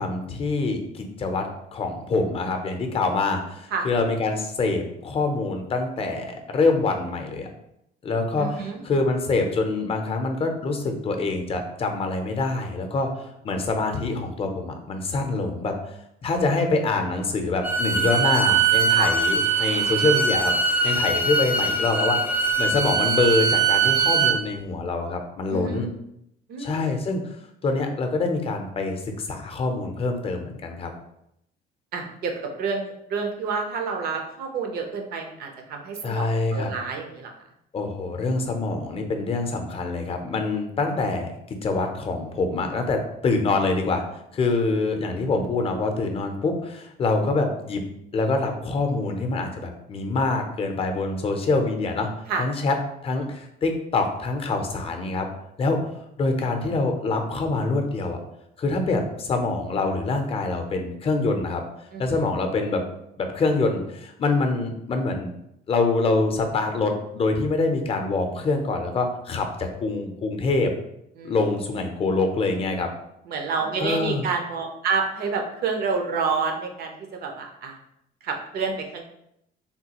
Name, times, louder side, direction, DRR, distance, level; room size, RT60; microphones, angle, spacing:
voice 1, 0.0-1.5 1.7-7.5 8.0-16.0 16.2-22.2 22.6-25.9 26.6-27.2 27.6-30.9 36.0-36.7 37.7-44.0 44.3-47.9 48.1-52.1 52.3-52.8 53.0-55.3 55.6-55.8 56.2-58.2 58.6-61.6 62.0-62.8 63.2-65.3 65.7-70.7 71.2-72.9 73.8-74.2, left 3 dB, 35° left, 5 dB, 0.6 m, -25 dB
voice 2, 8.4-8.8 19.0-19.1 25.5-25.8 26.5-26.9 31.9-37.3 52.3-52.4 61.9-62.2 71.2-71.4 73.3-77.7 78.2-79.0, right 5 dB, 65° right, 3 dB, 0.7 m, -29 dB
Bowed string instrument, 17.6-24.4, right 5 dB, 10° right, 0.5 m, -22 dB
3.6 x 2.3 x 2.9 m, 0.78 s
cardioid pair, 110°, 17 cm